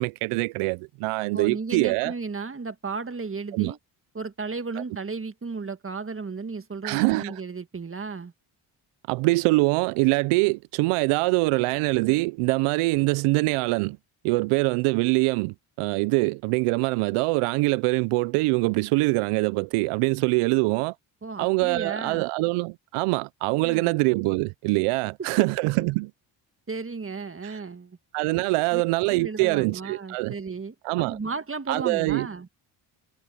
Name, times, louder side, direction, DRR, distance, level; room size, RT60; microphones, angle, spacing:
voice 1, 0.0-2.1 3.5-3.7 6.8-7.4 9.1-14.0 14.2-20.9 21.4-26.1 27.4-27.6 28.1-30.3 30.8-31.2 31.7-32.3, right 24 dB, 85° right, 0.6 m, -24 dB
voice 2, 1.3-3.8 4.1-8.3 21.2-22.2 23.6-23.9 26.7-28.0 28.7-28.8 29.1-32.5, right 4 dB, 25° right, 1.8 m, -34 dB
supercardioid pair, 60°, 50 cm